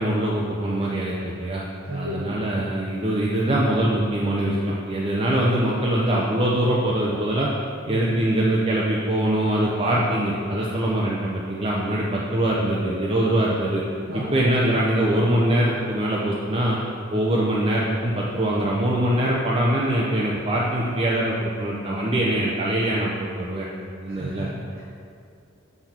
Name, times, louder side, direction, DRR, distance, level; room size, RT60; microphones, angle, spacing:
voice 1, 0.0-1.7 1.9-7.5 7.9-13.8 14.1-16.8 17.1-23.1 23.4-23.7 24.0-24.5, right 1 dB, 30° right, -5 dB, 0.7 m, -23 dB
voice 2, 1.9-2.5 7.9-8.1 14.1-14.4 24.0-24.8, equal, 90° right, -8 dB, 1.5 m, -33 dB
6.7 x 5.9 x 4.4 m, 2.5 s
head